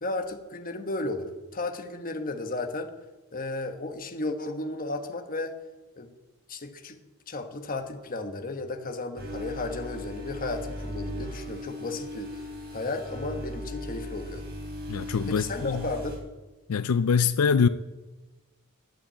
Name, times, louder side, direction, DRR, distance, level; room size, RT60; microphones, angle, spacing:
voice 1, 0.0-2.9 3.3-5.5 6.0-6.1 6.5-7.0 7.3-12.4 12.7-14.4 15.3-16.2, left 2 dB, 40° left, 6 dB, 1.2 m, -34 dB
sound 1, 9.2-16.2, equal, 50° right, 4.3 m, -38 dB
voice 2, 14.9-15.8 16.7-17.7, left 6 dB, 90° left, 14 dB, 0.5 m, -24 dB
12.0 x 8.4 x 8.6 m, 1.1 s
head